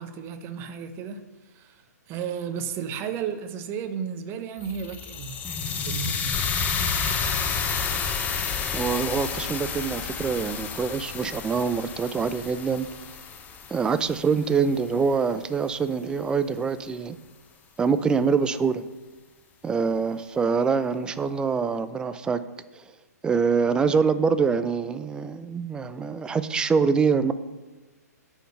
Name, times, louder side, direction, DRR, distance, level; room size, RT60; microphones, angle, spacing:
voice 1, 0.0-5.4 5.8-6.5, right 7 dB, 25° right, 9 dB, 0.9 m, -34 dB
sound 1, 4.6-14.8, left 6 dB, 15° left, 0.8 m, -30 dB
voice 2, 8.7-12.9 13.7-17.2 17.8-18.8 19.6-22.4 23.2-27.3, right 5 dB, 10° right, 13 dB, 0.4 m, -25 dB
9.0 x 6.4 x 6.8 m, 1.2 s
figure-of-eight pair, 125°, 9 cm